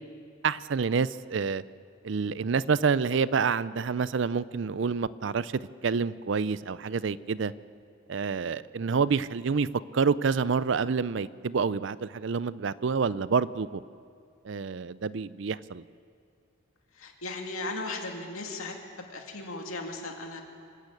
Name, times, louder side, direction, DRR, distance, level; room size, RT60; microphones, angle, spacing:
voice 1, 0.4-1.6 2.0-7.5 8.1-9.7 9.9-13.8 14.4-15.8, right 5 dB, 60° right, 18 dB, 0.4 m, -28 dB
voice 2, 17.0-18.7 19.1-20.4, left 2 dB, 90° left, 2 dB, 2.5 m, -36 dB
25.0 x 13.0 x 8.4 m, 2.3 s
head